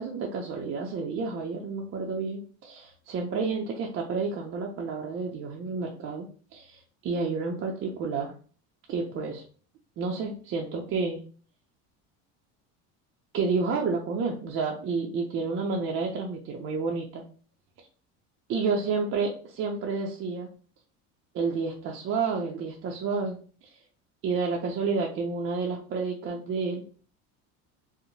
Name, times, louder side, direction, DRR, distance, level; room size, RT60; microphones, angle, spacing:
voice 1, 0.0-8.3 8.9-9.4 10.0-11.2 13.3-17.2 18.5-20.5 21.3-23.7 24.2-26.8, right 4 dB, 40° right, 0 dB, 0.4 m, -30 dB
2.7 x 2.0 x 2.6 m, 0.41 s
supercardioid pair, 110°, 35 cm